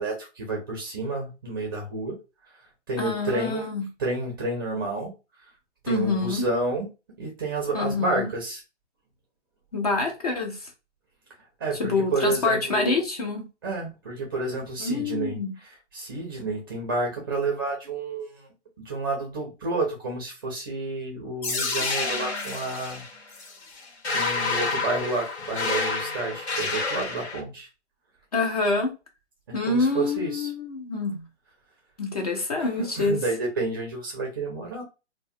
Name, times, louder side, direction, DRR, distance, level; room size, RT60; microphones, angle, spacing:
voice 1, 0.0-2.2 2.9-3.7 4.0-5.1 5.8-6.9 7.2-8.6 11.6-13.0 13.6-18.5 18.8-23.1 24.1-27.7 29.5-30.5 32.6-34.8, right 2 dB, 20° right, 0.4 m, -30 dB
voice 2, 3.0-3.9 5.9-6.4 7.7-8.3 9.7-10.6 11.8-13.4 14.8-15.5 28.3-28.9 29.5-31.2 32.0-33.2, left 3 dB, 35° left, 0.4 m, -26 dB
sound 1, 21.4-27.4, left 3 dB, 65° left, 0.8 m, -29 dB
2.3 x 2.1 x 2.6 m
figure-of-eight pair, 130°, 35 cm